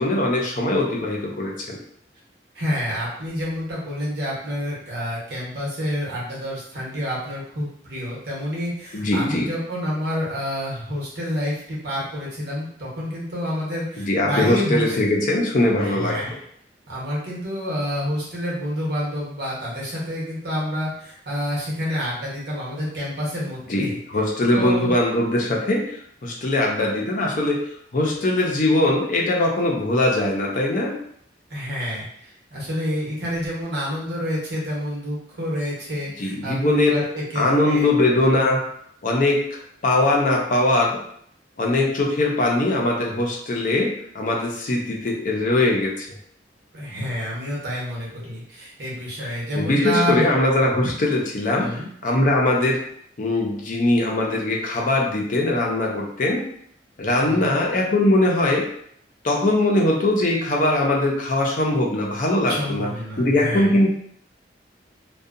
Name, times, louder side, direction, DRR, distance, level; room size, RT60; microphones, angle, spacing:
voice 1, 0.0-1.8 8.9-9.5 14.0-16.4 23.7-31.0 36.2-37.1 37.3-38.6 39.0-41.0 41.6-46.1 49.5-52.8 53.2-56.5 57.0-58.7 59.2-62.9 63.2-63.9, left 1 dB, 50° left, -1 dB, 0.5 m, -21 dB
voice 2, 2.5-14.9 15.8-16.4 16.9-24.0 24.5-24.9 31.5-37.9 46.7-50.3 51.6-51.9 57.2-57.6 62.5-63.7, equal, 65° right, -5 dB, 1.0 m, -28 dB
2.6 x 2.2 x 2.5 m, 0.67 s
head